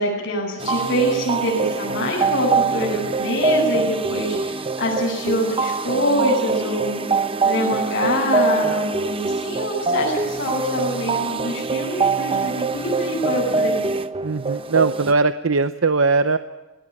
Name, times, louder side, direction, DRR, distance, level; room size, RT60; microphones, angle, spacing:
voice 1, 0.0-7.0 7.4-13.9, equal, 50° left, -7 dB, 7.6 m, -24 dB
sound 1, 0.6-15.1, right 4 dB, 25° right, 0.9 m, -24 dB
voice 2, 14.2-16.4, right 4 dB, 65° right, 11 dB, 0.8 m, -19 dB
19.5 x 19.5 x 9.0 m, 1.1 s
head